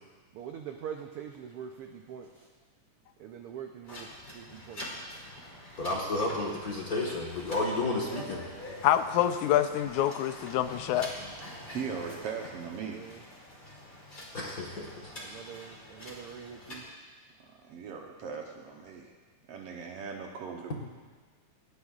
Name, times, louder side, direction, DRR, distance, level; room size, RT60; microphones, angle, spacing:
voice 1, 0.3-2.5 3.2-4.9 12.8-13.2 15.2-16.8, right 8 dB, 85° right, 4 dB, 1.2 m, -43 dB
sound 1, 3.8-16.8, left 1 dB, 15° left, 2.4 m, -45 dB
voice 2, 5.8-8.4 14.3-15.4, left 2 dB, 45° left, -3 dB, 1.3 m, -32 dB
voice 3, 8.8-11.1, left 11 dB, 85° left, 10 dB, 2.0 m, -26 dB
voice 4, 11.6-13.0 17.6-19.1 19.5-20.7, right 6 dB, 65° right, 1 dB, 1.7 m, -39 dB
26.5 x 9.7 x 2.4 m, 1.5 s
omnidirectional pair, 3.4 m